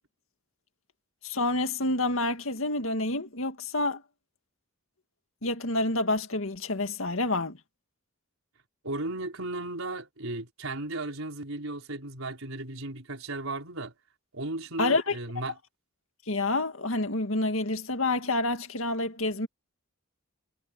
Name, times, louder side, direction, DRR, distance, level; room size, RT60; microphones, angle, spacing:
voice 1, 1.2-4.0 5.4-7.6 14.8-15.2 16.3-19.5, left 2 dB, 75° left, 2.1 m, -28 dB
voice 2, 8.8-13.9 14.3-15.6, right 2 dB, 80° right, 4.8 m, -35 dB
head